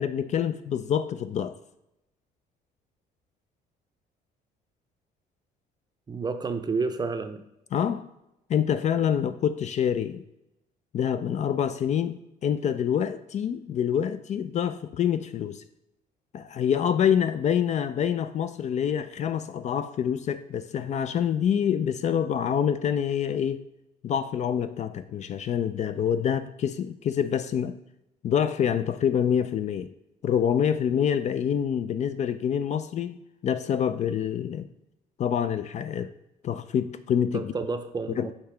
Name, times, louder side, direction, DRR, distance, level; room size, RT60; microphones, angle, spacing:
voice 1, 0.0-1.6 7.7-8.1 8.5-10.2 10.9-15.6 16.3-23.6 24.0-27.8 28.2-29.9 30.2-34.7 35.2-36.1 36.4-37.5 38.2-38.3, left 8 dB, 45° left, 12 dB, 0.4 m, -26 dB
voice 2, 6.1-7.4 37.3-38.3, right 4 dB, 25° right, 8 dB, 0.6 m, -30 dB
6.7 x 2.8 x 5.8 m, 0.88 s
cardioid pair, 110°, 17 cm